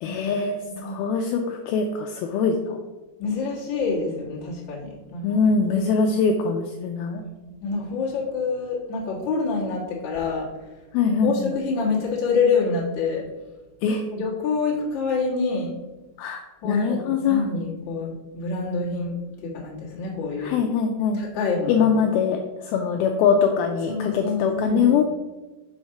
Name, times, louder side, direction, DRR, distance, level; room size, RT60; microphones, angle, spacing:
voice 1, 0.0-2.8 5.2-7.2 10.9-11.5 13.8-14.0 16.2-17.5 20.4-21.2 21.7-22.4 22.7-25.0, left 6 dB, 85° left, 4 dB, 2.2 m, -22 dB
voice 2, 0.7-1.0 3.2-5.4 5.7-6.1 7.1-10.5 11.0-13.2 14.1-15.7 16.6-19.2 19.4-20.6 21.1-21.9 23.9-25.0, left 4 dB, 55° left, -5 dB, 1.3 m, -27 dB
7.2 x 4.3 x 5.7 m, 1.1 s
omnidirectional pair, 4.8 m